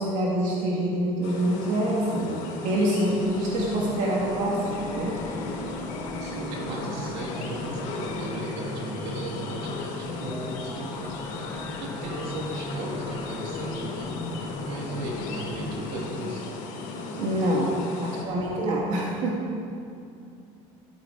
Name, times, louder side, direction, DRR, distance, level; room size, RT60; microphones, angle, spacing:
voice 1, 0.0-5.2 17.2-19.4, right 1 dB, 60° right, -4 dB, 2.3 m, -26 dB
sound 1, 1.2-18.2, left 3 dB, 75° left, 3.8 m, -36 dB
sound 2, 3.1-15.9, left 2 dB, 20° left, 1.7 m, -39 dB
voice 2, 6.2-14.3 14.6-16.4 18.1-18.5, right 1 dB, 85° right, -3 dB, 3.4 m, -36 dB
14.5 x 13.5 x 4.7 m, 2.6 s
cardioid pair, 155°, 14 cm